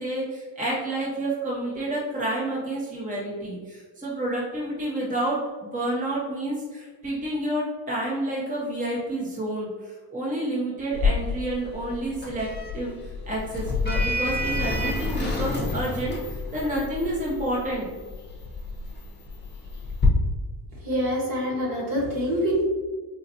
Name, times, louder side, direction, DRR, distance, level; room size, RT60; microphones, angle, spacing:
voice 1, 0.0-12.5 12.7-12.9 13.3-17.9, right 1 dB, 15° right, -5 dB, 0.8 m, -29 dB
Sliding door, 10.9-20.1, left 3 dB, 20° left, 0.8 m, -29 dB
voice 2, 20.8-22.6, equal, 45° right, -3 dB, 1.4 m, -25 dB
4.1 x 2.4 x 2.7 m, 1.4 s
cardioid pair, 100°, 46 cm